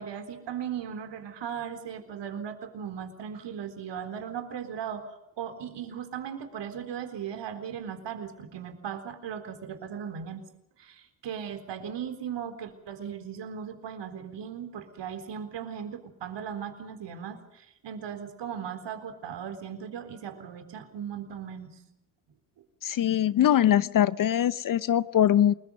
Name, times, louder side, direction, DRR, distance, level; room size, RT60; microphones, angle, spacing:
voice 1, 0.0-10.4 10.8-21.7, right 8 dB, 55° right, 8 dB, 4.0 m, -37 dB
voice 2, 22.8-25.5, left 11 dB, 40° left, 18 dB, 0.8 m, -22 dB
29.5 x 20.5 x 5.4 m, 0.84 s
hypercardioid pair, 55°, 50 cm